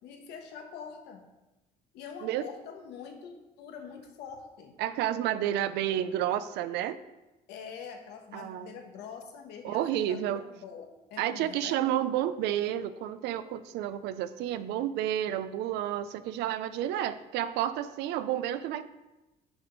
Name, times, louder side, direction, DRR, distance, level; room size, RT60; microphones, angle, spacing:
voice 1, 0.0-1.2 1.9-4.8 7.5-11.8, left 6 dB, 85° left, 4 dB, 1.1 m, -45 dB
voice 2, 4.8-7.0 8.3-8.8 9.6-10.4 11.2-18.8, right 11 dB, 85° right, 14 dB, 0.5 m, -30 dB
6.3 x 4.8 x 5.1 m, 1.0 s
cardioid pair, 110°, 17 cm